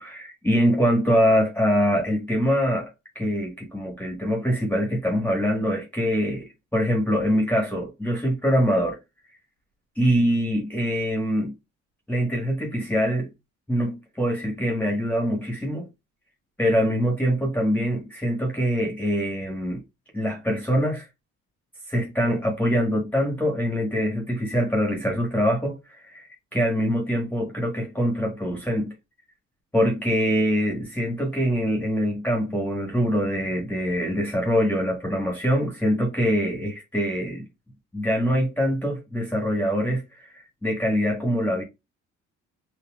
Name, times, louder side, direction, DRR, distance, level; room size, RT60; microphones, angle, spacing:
voice 1, 0.0-2.9 3.1-9.0 10.0-11.5 12.1-13.3 13.7-15.8 16.6-19.8 20.1-21.1 21.9-28.9 29.7-37.4 37.9-41.6, equal, 5° left, 1.5 m, -24 dB
5.9 x 2.7 x 2.4 m
cardioid pair, 90°, 30 cm